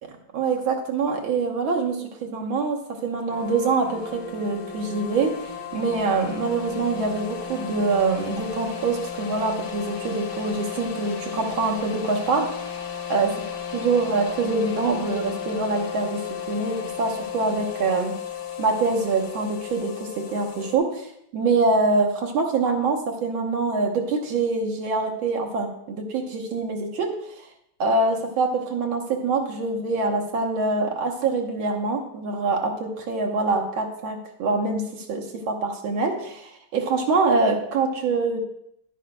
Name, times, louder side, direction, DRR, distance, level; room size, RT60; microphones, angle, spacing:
voice 1, 0.0-12.7 13.1-13.3 13.7-18.1 18.6-27.5 27.8-38.4, right 3 dB, 85° right, 1 dB, 1.8 m, -25 dB
sound 1, 3.3-20.8, left 8 dB, 85° left, 0.5 m, -34 dB
11.0 x 9.1 x 2.2 m, 0.75 s
omnidirectional pair, 2.2 m